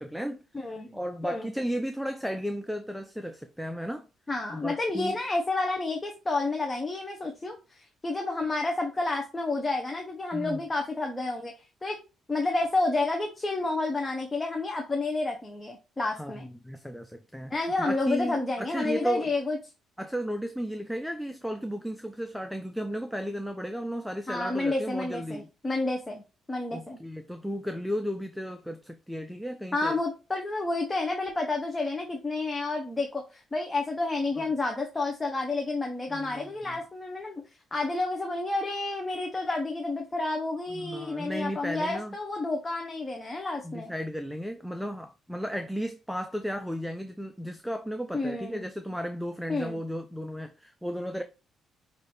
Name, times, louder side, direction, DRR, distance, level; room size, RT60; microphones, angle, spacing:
voice 1, 0.0-0.4 0.9-4.1 4.5-5.2 10.3-10.7 16.2-19.3 20.0-25.5 26.7-30.0 34.4-34.5 36.1-36.8 40.7-42.2 43.6-51.2, equal, ahead, 0.4 m, -34 dB
voice 2, 0.5-1.0 1.2-1.5 4.3-11.5 11.8-12.0 12.3-16.5 17.5-19.6 24.3-26.2 26.5-27.0 29.7-37.4 37.7-43.9 48.1-48.6 49.5-49.8, left 2 dB, 20° left, 0.8 m, -30 dB
5.9 x 2.7 x 3.2 m
cardioid pair, 90°, 0 cm